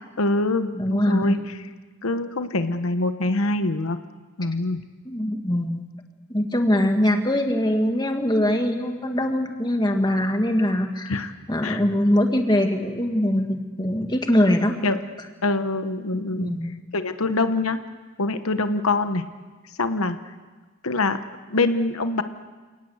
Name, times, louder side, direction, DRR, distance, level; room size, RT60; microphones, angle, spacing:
voice 1, 0.2-1.4 2.0-4.0 4.4-4.8 11.1-11.3 11.6-11.8 14.8-15.0 15.4-16.5 16.9-17.8 18.2-19.2 19.8-20.2 20.8-21.2 21.5-22.2, left 2 dB, 90° left, 9 dB, 1.2 m, -24 dB
voice 2, 0.8-1.4 5.1-5.8 6.3-11.1 11.5-14.8 16.3-16.7, left 1 dB, 20° left, 4 dB, 2.0 m, -22 dB
29.0 x 18.5 x 8.0 m, 1.3 s
head